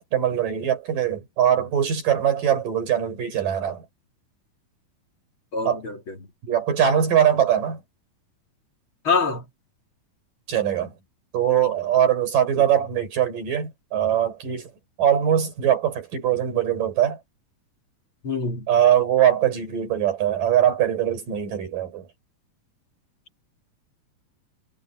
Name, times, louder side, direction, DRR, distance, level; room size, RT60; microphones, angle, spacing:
voice 1, 0.0-3.9 5.6-5.8 6.4-7.8 10.5-10.9 11.3-14.7 15.0-17.2 18.7-22.1, right 10 dB, 75° right, 6.3 m, -22 dB
voice 2, 5.5-6.2 9.0-9.4 18.2-18.7, left 4 dB, 40° left, 3.1 m, -25 dB
omnidirectional pair, 3.9 m